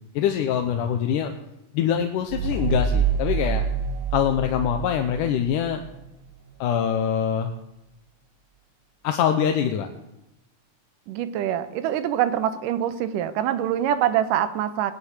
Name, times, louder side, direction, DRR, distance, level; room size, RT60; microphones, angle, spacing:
voice 1, 0.2-1.3 1.7-3.6 4.1-5.8 6.6-7.5 9.0-9.9, left 9 dB, 80° left, 5 dB, 2.4 m, -24 dB
sound 1, 2.3-5.7, right 5 dB, 60° right, 2.4 m, -26 dB
voice 2, 11.1-14.9, right 10 dB, 85° right, 13 dB, 2.4 m, -24 dB
18.5 x 10.0 x 6.4 m, 0.91 s
omnidirectional pair, 3.7 m